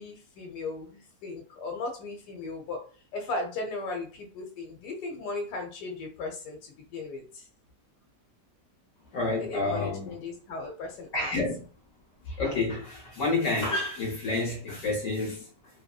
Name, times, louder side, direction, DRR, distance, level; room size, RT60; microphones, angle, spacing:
voice 1, 0.0-2.9 3.1-7.5 9.4-11.3, left 3 dB, 80° left, 1.2 m, -37 dB
voice 2, 9.1-10.1 11.1-11.6 12.3-15.5, left 3 dB, 60° left, 1.0 m, -29 dB
2.9 x 2.6 x 2.3 m
omnidirectional pair, 1.7 m